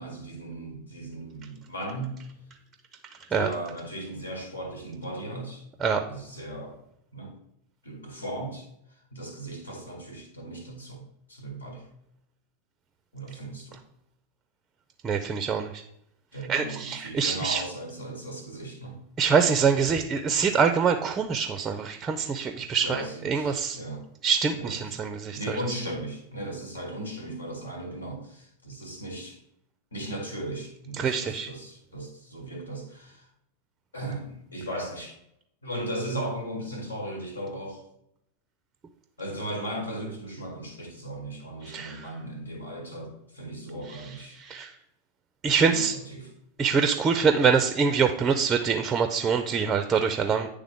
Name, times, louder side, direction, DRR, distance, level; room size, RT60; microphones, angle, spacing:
voice 1, 0.0-2.2 3.3-5.6 6.1-6.8 7.1-7.3 7.8-8.7 9.1-11.0 11.3-11.9 13.1-13.8 16.3-19.0 22.8-24.1 24.6-25.0 25.3-29.4 29.9-33.3 33.9-35.2 35.6-37.8 39.2-44.4 45.6-46.3, right 1 dB, 75° left, 3 dB, 1.4 m, -37 dB
voice 2, 15.0-15.8 16.5-17.6 19.2-23.8 24.2-25.6 31.0-31.5 41.6-42.0 43.9-44.0 44.4-44.7 45.4-46.0 46.6-50.5, right 6 dB, 20° right, 7 dB, 0.4 m, -25 dB
9.4 x 3.4 x 3.5 m, 0.78 s
figure-of-eight pair, 90°, 0 cm